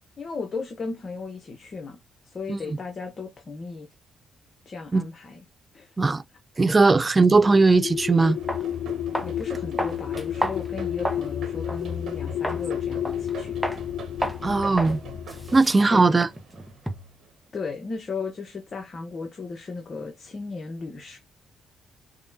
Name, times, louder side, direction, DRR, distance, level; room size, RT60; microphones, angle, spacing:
voice 1, 0.2-2.0 2.2-3.9 4.7-5.4 5.7-6.0 9.2-13.6 15.9-16.1 17.5-21.2, left 4 dB, 45° left, 0.9 m, -35 dB
voice 2, 6.6-8.4 14.4-15.0 15.5-16.3, right 3 dB, 25° right, 0.3 m, -19 dB
sound 1, 7.3-15.6, left 10 dB, 75° left, 0.3 m, -31 dB
sound 2, 7.9-8.0 8.5-8.6 9.1-9.4 9.8-11.3 11.7-11.8 12.4-12.7 13.0-13.3 13.6-13.8 14.2-14.4 14.8-15.0 15.3-17.2, equal, ahead, 0.8 m, -31 dB
sound 3, 8.2-17.3, right 5 dB, 65° right, 1.4 m, -44 dB
5.2 x 2.3 x 2.6 m
cardioid pair, 90°, 0 cm